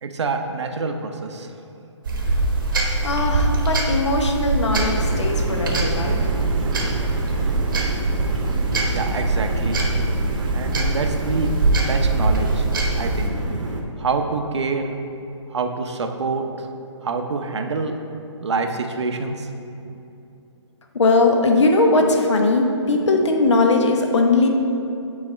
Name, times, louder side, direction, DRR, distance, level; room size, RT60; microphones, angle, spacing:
voice 1, 0.0-1.5 8.9-10.0 10.5-11.5 11.8-12.7 12.9-13.4 14.0-14.9 15.5-16.7 17.0-17.9 18.4-19.5, right 4 dB, 65° right, 5 dB, 0.7 m, -26 dB
sound 1, 2.0-13.3, right 3 dB, 45° right, 1.0 m, -23 dB
voice 2, 3.0-6.3 20.9-24.5, left 2 dB, 65° left, 3 dB, 1.0 m, -19 dB
sound 2, 4.8-13.8, right 2 dB, 85° right, 1.1 m, -28 dB
8.5 x 4.1 x 4.3 m, 2.7 s
hypercardioid pair, 175°, 16 cm